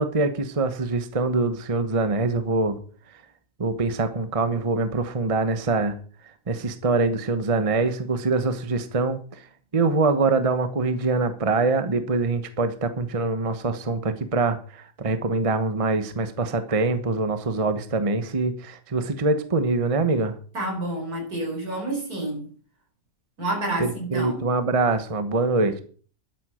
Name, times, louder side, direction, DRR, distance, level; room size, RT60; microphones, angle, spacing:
voice 1, 0.0-2.8 3.6-6.0 6.5-9.4 9.7-20.3 23.8-25.8, right 3 dB, 25° right, 10 dB, 1.0 m, -24 dB
voice 2, 20.5-22.5 23.4-24.5, right 1 dB, 80° right, 2 dB, 5.0 m, -29 dB
12.5 x 8.3 x 6.3 m, 0.42 s
omnidirectional pair, 1.6 m